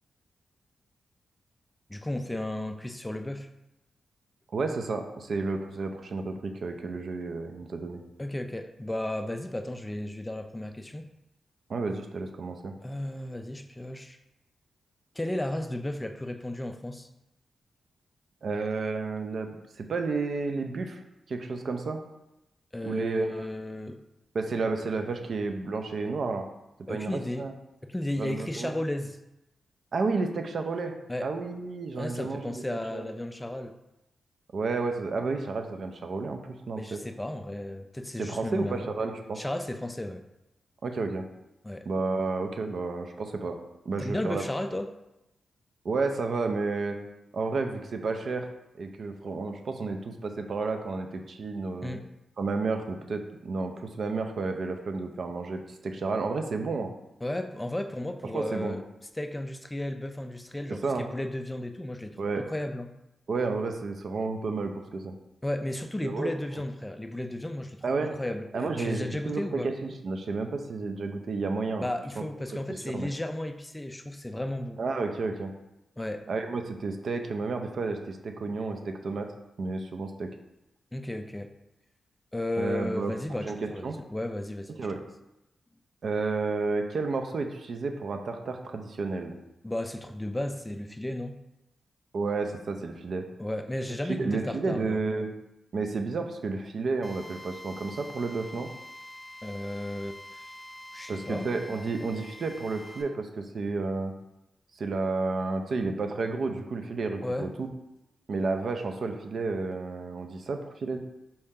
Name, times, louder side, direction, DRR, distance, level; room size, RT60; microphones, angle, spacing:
voice 1, 1.9-3.5 8.2-11.0 12.8-14.2 15.2-17.1 22.7-24.0 26.9-27.5 27.8-29.2 31.1-31.3 32.0-33.7 36.8-38.9 39.4-40.2 41.6-41.9 44.0-44.9 51.8-52.1 57.2-58.8 59.2-62.9 65.4-69.7 71.8-74.8 76.0-76.3 80.9-81.5 82.3-84.7 89.6-91.4 93.4-95.0 99.4-100.4 100.9-101.5 107.2-107.5, left 1 dB, 15° left, 7 dB, 0.3 m, -34 dB
voice 2, 4.5-8.0 11.7-12.7 18.4-21.0 21.3-22.0 22.8-23.5 24.3-26.4 26.9-27.5 28.2-28.7 29.9-30.9 31.2-32.6 32.9-33.1 34.5-36.4 36.7-37.0 38.2-39.4 40.8-41.2 41.9-43.6 43.9-44.4 45.8-47.0 47.3-48.5 48.8-52.0 52.4-56.9 58.3-58.8 60.7-61.1 62.2-62.4 63.3-65.1 66.0-66.3 67.8-68.1 68.5-71.9 72.2-72.3 72.7-73.1 74.8-75.5 76.3-79.3 79.6-80.3 82.6-83.2 83.4-84.0 84.7-85.0 86.0-89.4 92.1-93.3 94.1-95.3 95.7-98.7 101.1-104.1 104.7-107.7 108.3-111.0, right 3 dB, 60° right, 5 dB, 0.5 m, -31 dB
Drill, 97.0-103.0, left 1 dB, 25° right, 0.9 m, -46 dB
4.2 x 2.8 x 3.6 m, 0.91 s
cardioid pair, 80°, 0 cm